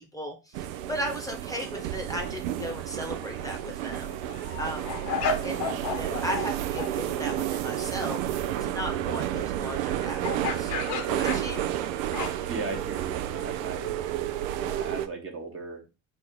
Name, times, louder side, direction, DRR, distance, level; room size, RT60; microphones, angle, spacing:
voice 1, 0.0-4.1 4.6-5.0 5.4-8.2 8.6-10.7 11.0-11.7, equal, 10° left, 2 dB, 1.0 m, -36 dB
sound 1, 0.5-15.1, right 12 dB, 70° right, 0.5 m, -31 dB
sound 2, 3.2-3.5 3.9-6.5 6.8-6.9 10.2-12.6, left 5 dB, 60° left, 1.0 m, -33 dB
voice 2, 11.1-11.5 12.5-14.0 14.6-15.8, right 3 dB, 30° right, 3 dB, 1.1 m, -37 dB
3.4 x 2.4 x 4.5 m, 0.29 s
hypercardioid pair, 60°, 42 cm